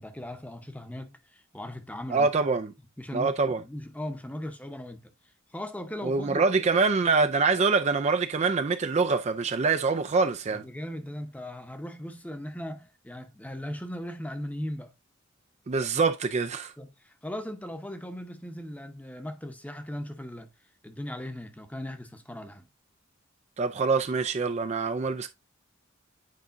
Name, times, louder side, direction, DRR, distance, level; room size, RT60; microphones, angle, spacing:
voice 1, 0.0-2.3 3.0-5.1 5.5-6.4 10.5-14.9 16.8-20.5 20.8-22.7, left 1 dB, 10° left, 0.9 m, -38 dB
voice 2, 2.1-2.7 3.1-3.6 6.0-10.6 15.7-16.7 23.6-25.3, right 4 dB, 35° right, 0.4 m, -25 dB
9.5 x 4.9 x 2.6 m
head